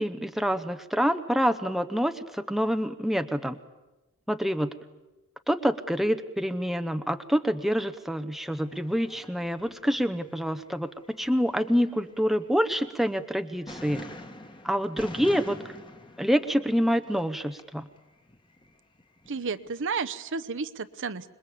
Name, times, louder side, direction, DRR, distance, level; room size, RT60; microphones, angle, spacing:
voice 1, 0.0-3.6 4.3-4.7 5.5-14.1 14.6-15.8 16.2-17.9, equal, ahead, 9 dB, 0.8 m, -27 dB
sound 1, 8.6-10.8 11.0-13.4 13.7-17.6 18.0-19.7, left 1 dB, 20° left, 1.8 m, -46 dB
voice 2, 19.3-21.3, right 5 dB, 60° right, 12 dB, 0.9 m, -32 dB
26.5 x 21.5 x 8.4 m, 1.1 s
head